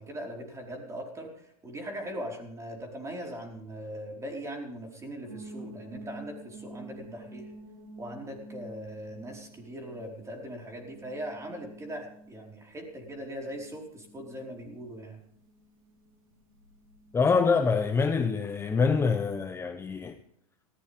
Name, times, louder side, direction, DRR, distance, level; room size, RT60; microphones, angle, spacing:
voice 1, 0.0-7.5 8.0-15.2, equal, 15° right, 4.9 m, -40 dB
sound 1, 5.2-18.3, right 1 dB, 65° right, 4.7 m, -49 dB
voice 2, 17.1-20.2, left 5 dB, 15° left, 1.0 m, -25 dB
19.0 x 16.5 x 3.7 m
supercardioid pair, 125°, 19 cm